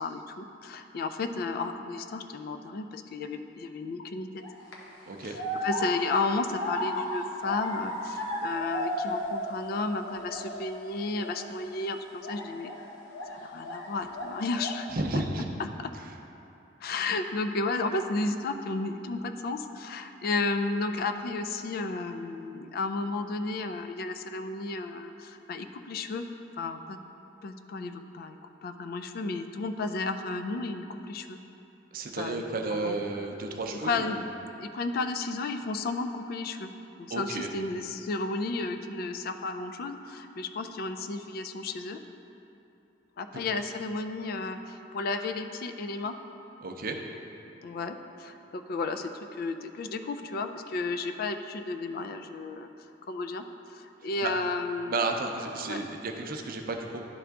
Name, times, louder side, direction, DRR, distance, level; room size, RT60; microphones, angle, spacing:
voice 1, 0.0-4.4 5.2-12.7 13.3-14.9 15.6-15.9 16.8-26.3 26.6-27.0 27.4-31.4 32.2-32.4 32.7-33.0 33.8-34.2 34.6-36.7 37.0-42.0 43.2-46.2 47.6-52.7 53.1-53.4 53.7-55.0 55.6-55.8, left 3 dB, 50° left, 8 dB, 0.3 m, -33 dB
sound 1, 4.4-4.7 5.3-9.7 10.0-10.8 11.2-11.4 12.2-13.9 14.1-14.9, left 1 dB, 90° left, 0.9 m, -34 dB
voice 2, 5.1-5.4 14.9-15.5 31.9-34.2 37.1-37.5 46.6-47.0 54.2-54.3 54.9-57.0, right 3 dB, 50° right, 3 dB, 0.5 m, -32 dB
11.0 x 3.7 x 3.5 m, 2.9 s
head